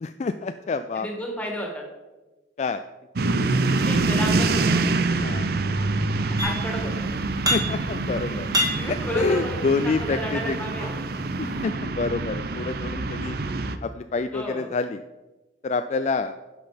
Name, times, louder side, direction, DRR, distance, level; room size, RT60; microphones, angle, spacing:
voice 1, 0.0-1.1 2.6-2.8 5.2-5.5 7.5-8.5 8.9-10.6 11.4-13.4 13.8-15.0 15.6-16.3, left 4 dB, 35° left, 10 dB, 0.3 m, -27 dB
voice 2, 0.9-1.8 3.9-4.8 6.2-7.1 8.1-11.1 14.3-14.7, equal, 5° left, 0 dB, 2.0 m, -33 dB
sound 1, 3.2-13.8, right 3 dB, 55° right, 0.6 m, -26 dB
sound 2, 6.4-6.9 7.2-8.0 8.3-9.9 10.5-11.7, equal, 20° right, 2.0 m, -28 dB
11.0 x 6.1 x 5.1 m, 1.1 s
head